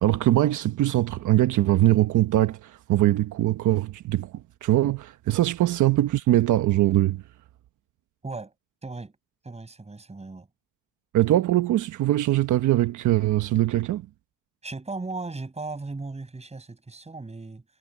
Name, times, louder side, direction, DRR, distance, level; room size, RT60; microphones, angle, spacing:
voice 1, 0.0-7.2 11.1-14.1, right 14 dB, 80° right, 1.2 m, -22 dB
voice 2, 8.2-8.5 8.8-9.2 9.4-10.5 14.6-17.6, right 3 dB, 20° right, 6.5 m, -36 dB
cardioid pair, 90°, 30 cm